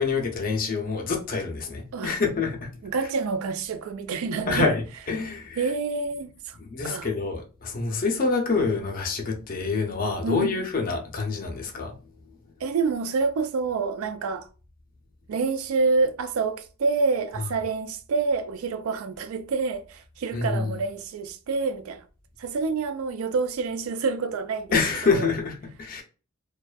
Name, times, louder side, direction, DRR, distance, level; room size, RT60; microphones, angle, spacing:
voice 1, 0.0-2.7 4.5-5.6 6.6-12.0 20.3-20.8 24.7-26.0, left 4 dB, 40° left, 0.5 m, -26 dB
voice 2, 2.8-4.7 5.6-6.6 6.9-7.1 10.2-10.6 12.6-14.5 15.3-22.0 22.4-24.8 25.0-25.3, right 4 dB, 75° right, 0.4 m, -27 dB
2.5 x 2.2 x 2.2 m
head